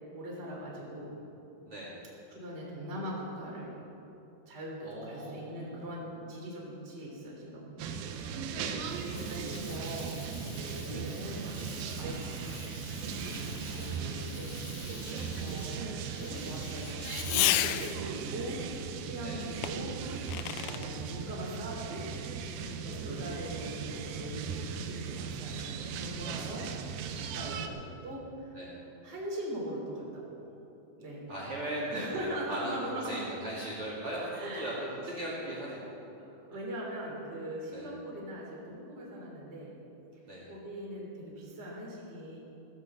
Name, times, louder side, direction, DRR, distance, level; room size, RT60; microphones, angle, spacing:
voice 1, 0.1-1.2 2.3-3.8 4.5-8.0 9.1-11.4 12.0-12.7 12.9-15.1 15.4-15.9 16.2-18.6 19.0-20.0 20.6-22.1 22.6-28.6 29.0-30.5 31.0-31.3 31.9-33.2 34.3-34.8 36.4-39.8 40.5-42.4, equal, 20° right, -3 dB, 3.1 m, -41 dB
voice 2, 1.6-2.0 4.8-6.1 8.5-8.8 13.7-14.6 15.1-15.3 19.2-19.4 20.5-20.8 23.0-23.4 26.2-26.8 27.1-27.7 28.5-28.8 31.3-36.4 37.7-37.9 40.3-40.5, right 1 dB, 40° right, -6 dB, 3.3 m, -40 dB
sound 1, 7.8-27.7, right 6 dB, 80° right, 2.6 m, -38 dB
Fireworks, 8.3-18.2 19.6-20.9, left 14 dB, 85° left, 1.8 m, -37 dB
16.0 x 10.5 x 7.5 m, 2.9 s
omnidirectional pair, 4.2 m